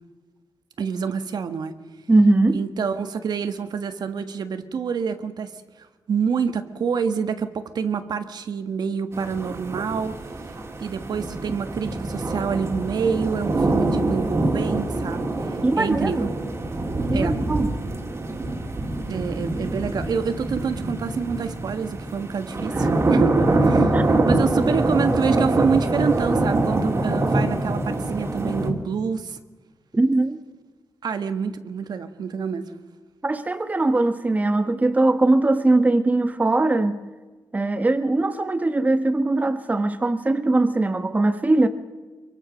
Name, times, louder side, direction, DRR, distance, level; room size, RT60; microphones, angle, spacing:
voice 1, 0.8-1.7 2.5-5.5 5.8-10.2 10.8-16.3 17.1-17.4 19.1-29.4 31.0-32.7, right 6 dB, 75° right, 9 dB, 1.6 m, -27 dB
voice 2, 2.1-2.6 15.6-16.3 17.1-17.8 23.9-24.1 29.9-30.4 33.2-37.0 37.5-41.7, right 2 dB, 20° right, 9 dB, 1.3 m, -20 dB
sound 1, 9.1-28.7, right 2 dB, 40° right, 3.0 m, -24 dB
25.5 x 24.0 x 6.4 m, 1.3 s
wide cardioid pair, 145°, 7 cm